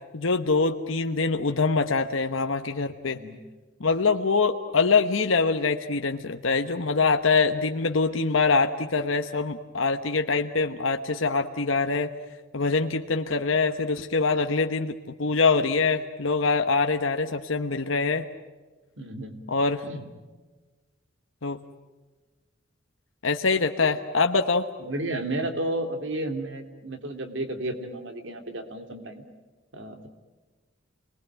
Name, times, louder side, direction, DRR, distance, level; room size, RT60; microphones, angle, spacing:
voice 1, 0.1-3.2 3.8-12.1 12.5-18.2 19.5-19.8 21.4-21.6 23.2-24.6, left 4 dB, 85° left, 6 dB, 1.2 m, -24 dB
voice 2, 3.0-3.4 19.0-19.4 19.8-20.1 24.8-29.2 29.7-30.1, right 1 dB, 70° right, 6 dB, 3.0 m, -32 dB
29.0 x 20.5 x 9.1 m, 1.3 s
head